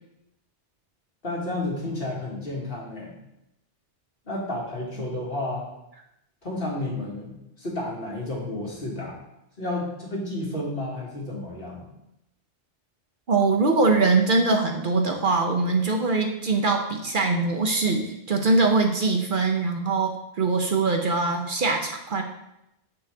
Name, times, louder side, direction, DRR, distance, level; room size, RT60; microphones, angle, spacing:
voice 1, 1.2-3.2 4.3-5.7 6.4-9.2 9.6-11.8, left 2 dB, 55° left, -4 dB, 2.0 m, -31 dB
voice 2, 13.3-22.2, right 3 dB, 55° right, 3 dB, 0.8 m, -22 dB
7.3 x 5.4 x 3.3 m, 0.85 s
omnidirectional pair, 1.1 m